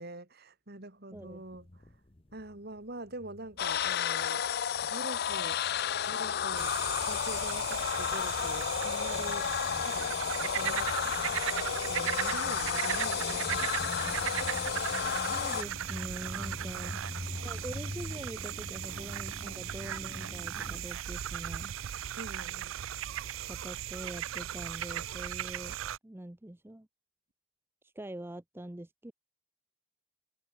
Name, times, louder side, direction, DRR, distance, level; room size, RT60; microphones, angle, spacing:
voice 1, 0.0-1.7 2.3-5.6 6.0-6.8 7.1-9.5 9.8-11.4 11.9-14.3 16.8-17.3 22.1-22.8, right 2 dB, 50° right, 2.4 m, -45 dB
sound 1, 1.1-2.8 3.0-20.8, left 1 dB, 25° left, 1.0 m, -46 dB
voice 2, 1.1-1.4 15.3-17.0 17.4-21.7 23.5-25.8 26.0-26.9 27.8-29.1, right 1 dB, 10° right, 0.5 m, -44 dB
sound 2, 3.6-15.6, left 8 dB, 50° left, 0.4 m, -32 dB
sound 3, 6.6-26.0, right 11 dB, 70° right, 0.4 m, -37 dB
head